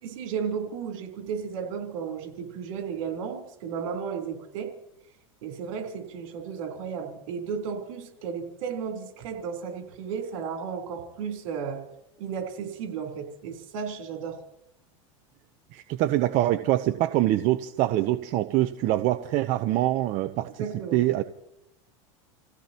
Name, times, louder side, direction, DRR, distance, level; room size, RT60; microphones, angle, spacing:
voice 1, 0.0-4.7 5.4-11.8 12.2-14.4 20.6-21.0, right 6 dB, 75° right, 2 dB, 3.8 m, -34 dB
voice 2, 15.7-20.5 20.9-21.2, right 15 dB, 50° right, 9 dB, 0.8 m, -24 dB
29.0 x 16.5 x 3.0 m, 0.83 s
supercardioid pair, 120°, 17 cm